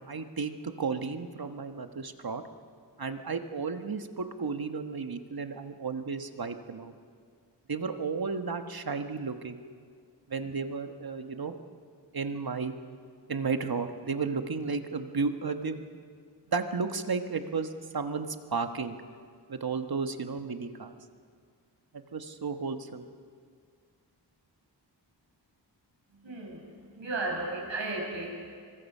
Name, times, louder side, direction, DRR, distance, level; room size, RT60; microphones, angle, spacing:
voice 1, 0.0-2.4 3.0-6.9 7.7-9.5 10.3-11.5 12.1-12.7 13.3-16.0 16.5-19.0 19.5-20.9 21.9-23.0, right 4 dB, 55° right, 7 dB, 1.3 m, -33 dB
voice 2, 26.1-28.5, right 2 dB, 85° right, -1 dB, 6.0 m, -35 dB
25.0 x 22.0 x 5.6 m, 2.1 s
wide cardioid pair, 75°, 44 cm